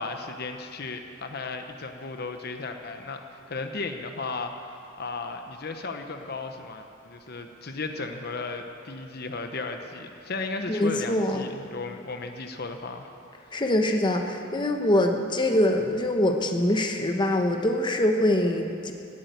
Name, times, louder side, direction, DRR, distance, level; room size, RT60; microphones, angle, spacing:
voice 1, 0.0-3.2 3.5-13.1 13.4-13.6, left 3 dB, 50° left, 6 dB, 0.9 m, -35 dB
voice 2, 10.7-11.4 13.5-18.9, left 1 dB, 20° left, 3 dB, 0.9 m, -24 dB
16.0 x 8.8 x 9.2 m, 2.6 s
head